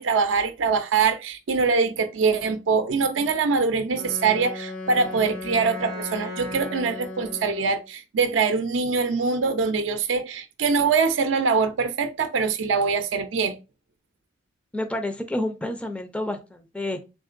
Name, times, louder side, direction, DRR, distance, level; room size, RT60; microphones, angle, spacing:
voice 1, 0.0-13.5, right 5 dB, 75° right, 0.5 m, -23 dB
Wind instrument woodwind instrument, 3.9-7.9, left 2 dB, 90° left, 1.7 m, -36 dB
voice 2, 14.7-17.0, left 1 dB, 5° left, 0.3 m, -29 dB
3.7 x 3.5 x 2.5 m
head